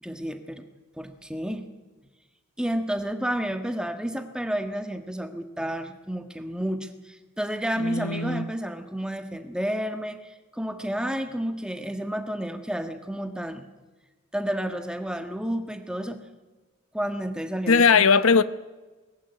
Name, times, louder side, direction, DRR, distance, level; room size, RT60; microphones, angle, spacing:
voice 1, 0.0-0.6 1.0-1.7 2.6-13.7 14.3-16.2 16.9-18.0, equal, 5° right, 1.4 m, -31 dB
voice 2, 7.8-8.4 17.7-18.4, left 5 dB, 70° left, 0.9 m, -19 dB
19.5 x 15.0 x 9.8 m
head